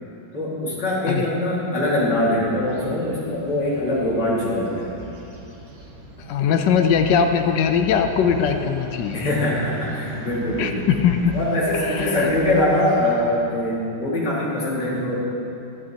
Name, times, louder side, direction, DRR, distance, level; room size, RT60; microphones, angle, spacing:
voice 1, 0.3-4.9 9.1-10.9 11.3-15.2, left 1 dB, 55° left, -7 dB, 2.7 m, -23 dB
sound 1, 1.8-13.2, right 1 dB, 80° right, 2.3 m, -39 dB
voice 2, 6.3-9.3 10.6-11.3 11.8-12.3, left 7 dB, 75° left, 6 dB, 1.1 m, -20 dB
11.5 x 10.5 x 2.9 m, 2.9 s
omnidirectional pair, 2.3 m